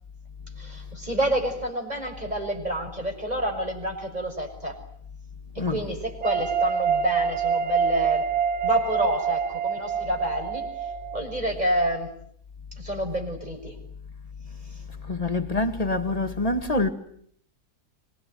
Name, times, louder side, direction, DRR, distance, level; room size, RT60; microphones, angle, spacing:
voice 1, 0.6-4.8 5.5-8.2 8.6-10.7 11.1-12.1 12.8-13.7, right 1 dB, 25° right, 6.4 m, -28 dB
sound 1, 6.2-11.5, right 7 dB, 45° right, 1.9 m, -26 dB
voice 2, 15.1-16.9, left 2 dB, 25° left, 2.1 m, -25 dB
26.0 x 23.5 x 9.4 m
omnidirectional pair, 1.7 m